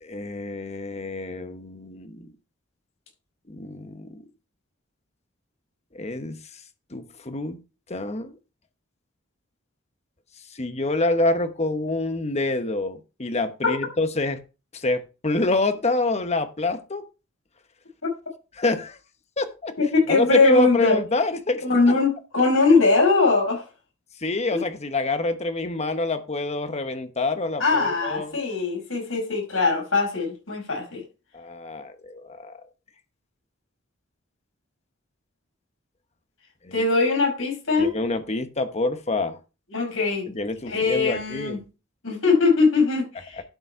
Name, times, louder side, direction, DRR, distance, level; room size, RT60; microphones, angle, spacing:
voice 1, 0.0-2.3 3.5-4.2 5.9-6.4 6.9-7.6 7.9-8.4 10.5-14.4 14.7-17.0 18.6-19.0 19.4-19.7 20.1-21.6 24.2-28.3 31.3-32.6 36.6-36.8 37.8-39.4 40.3-41.6 43.3-43.4, left 2 dB, 35° left, 1.1 m, -26 dB
voice 2, 19.8-21.0 21.6-23.6 24.5-24.6 27.6-31.0 36.7-37.9 39.7-40.3 40.7-41.6 42.0-43.4, left 4 dB, 90° left, 5.7 m, -21 dB
12.0 x 5.3 x 4.6 m
head